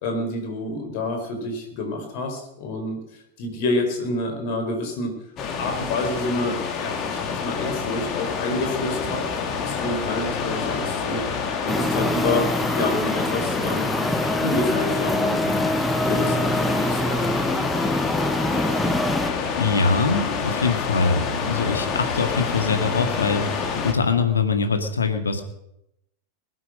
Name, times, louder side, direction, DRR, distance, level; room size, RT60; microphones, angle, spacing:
voice 1, 0.0-3.0 3.4-5.2 5.6-9.2 9.6-11.2 11.6-12.5 12.7-13.9 14.4-15.7 16.0-17.0, left 2 dB, 50° left, 4 dB, 4.6 m, -28 dB
sound 1, 5.4-23.9, left 5 dB, 35° left, 2.5 m, -28 dB
sound 2, 11.7-19.3, equal, 5° left, 0.6 m, -25 dB
voice 2, 19.6-25.4, left 4 dB, 75° left, 7 dB, 2.0 m, -23 dB
21.5 x 9.5 x 6.4 m, 0.83 s
figure-of-eight pair, 90°, 0 cm